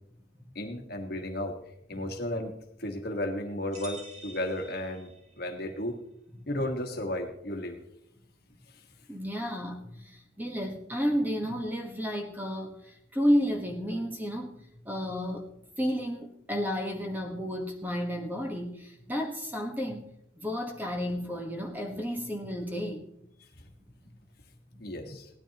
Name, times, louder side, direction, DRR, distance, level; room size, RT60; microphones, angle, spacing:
voice 1, 0.5-1.6 1.9-5.1 5.4-6.0 6.5-7.8 24.8-25.3, left 1 dB, 50° left, 4 dB, 1.5 m, -34 dB
sound 1, 3.7-5.5, right 1 dB, 35° right, 3.0 m, -48 dB
voice 2, 9.1-14.6 14.8-15.5 15.8-20.0 20.4-23.0 24.7-24.8, equal, 10° right, 2 dB, 1.3 m, -31 dB
18.0 x 12.5 x 3.0 m, 0.78 s
head